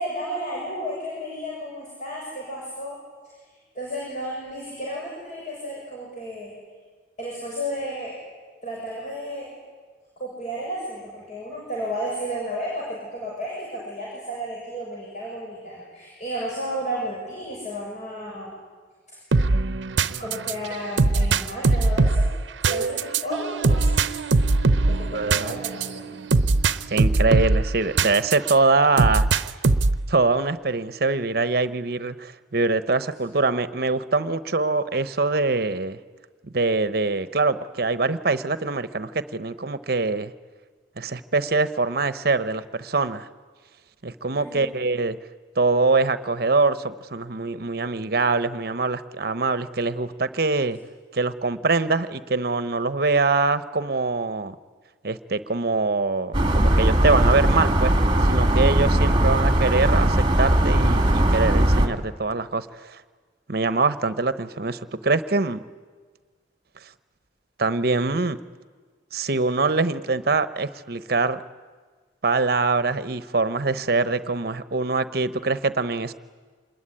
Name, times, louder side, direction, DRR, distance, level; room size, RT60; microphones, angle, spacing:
voice 1, 0.0-3.0 3.7-6.5 7.2-8.1 8.6-9.5 10.2-18.5 19.1-19.2 20.2-22.3 22.6-24.1 24.8-26.1 44.4-44.7, equal, 40° left, -4 dB, 7.1 m, -33 dB
sound 1, 19.3-28.5 29.0-30.1, right 3 dB, 90° right, 0.8 m, -21 dB
voice 2, 25.1-25.6 26.9-29.3 30.1-36.0 36.5-40.3 41.0-43.3 44.0-45.2 45.6-50.8 51.1-54.5 55.0-57.9 58.2-63.0 63.5-65.6 67.6-68.4 69.1-71.4 72.2-76.1, right 3 dB, 55° right, 13 dB, 0.9 m, -23 dB
sound 2, 56.3-61.9, right 1 dB, 25° right, 1.8 m, -19 dB
26.5 x 21.0 x 10.0 m, 1.5 s
head